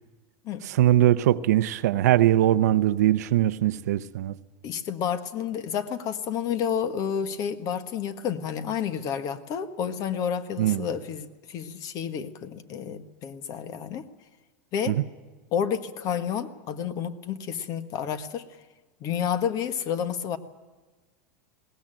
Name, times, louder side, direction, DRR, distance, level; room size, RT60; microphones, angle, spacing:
voice 1, 0.7-4.3 10.6-10.8 14.9-15.0, right 13 dB, 85° right, 0.8 m, -21 dB
voice 2, 4.6-14.1 14.7-15.0 15.5-18.5 19.0-20.4, left 8 dB, 45° left, 1.5 m, -30 dB
21.0 x 18.5 x 9.0 m
supercardioid pair, 135°, 9 cm